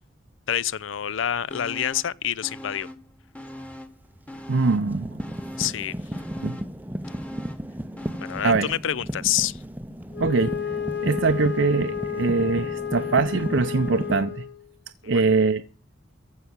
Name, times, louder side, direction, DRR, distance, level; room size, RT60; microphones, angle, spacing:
voice 1, 0.5-2.9 5.6-5.9 8.2-9.6 15.0-15.2, left 10 dB, 75° left, 0.5 m, -27 dB
sound 1, 1.5-2.2 2.4-4.0 4.3-8.6 9.0-9.1, left 1 dB, 5° left, 1.1 m, -41 dB
sound 2, 3.6-3.8 4.2-14.2, equal, 10° right, 0.5 m, -34 dB
voice 2, 4.5-5.1 6.4-6.6 8.4-8.7 10.2-10.8 11.0-14.5 15.0-15.6, right 4 dB, 70° right, 0.6 m, -23 dB
Wind instrument woodwind instrument, 10.1-14.7, left 8 dB, 60° left, 1.5 m, -32 dB
15.0 x 5.7 x 9.4 m
head